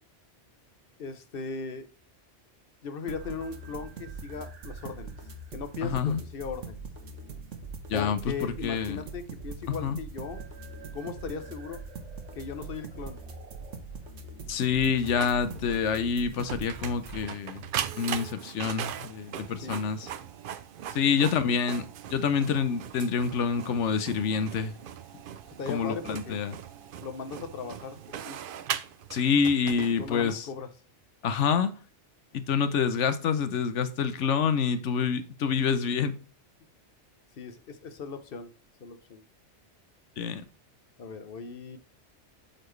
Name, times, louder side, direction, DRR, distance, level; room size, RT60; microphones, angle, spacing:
voice 1, 1.0-1.9 2.8-5.1 5.5-6.8 7.9-10.5 10.9-11.8 12.3-13.2 19.6-19.8 21.0-21.5 25.6-26.4 27.0-28.4 29.8-30.7 35.0-35.1 37.4-38.5 38.8-39.2 41.0-41.8, left 5 dB, 55° left, 1.0 m, -38 dB
sound 1, 3.1-17.2, right 3 dB, 85° right, 1.4 m, -42 dB
voice 2, 5.8-6.2 7.9-9.0 9.8-10.0 14.5-17.7 17.9-20.1 20.9-24.7 25.7-26.6 29.1-30.5 31.2-31.7 32.3-36.1 40.2-40.4, left 6 dB, 80° left, 1.1 m, -27 dB
Printer, 15.0-30.4, right 9 dB, 60° right, 0.6 m, -39 dB
7.7 x 4.3 x 3.1 m
omnidirectional pair, 1.2 m